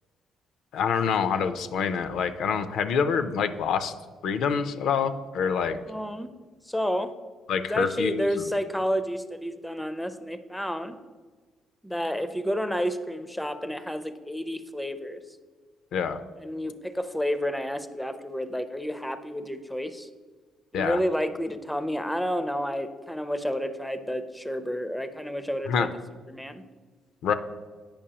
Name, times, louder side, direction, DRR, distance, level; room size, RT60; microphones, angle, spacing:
voice 1, 0.7-3.9 4.2-5.8 7.5-8.3 15.9-16.2 20.7-21.0 25.7-25.9 27.2-27.3, left 6 dB, 75° left, 10 dB, 0.4 m, -26 dB
voice 2, 5.9-6.3 6.7-7.1 7.6-10.9 11.8-15.2 16.4-20.1 20.7-25.9 26.3-26.6, equal, 5° left, 10 dB, 0.4 m, -30 dB
8.6 x 5.3 x 2.8 m, 1.4 s
cardioid pair, 100°, 0 cm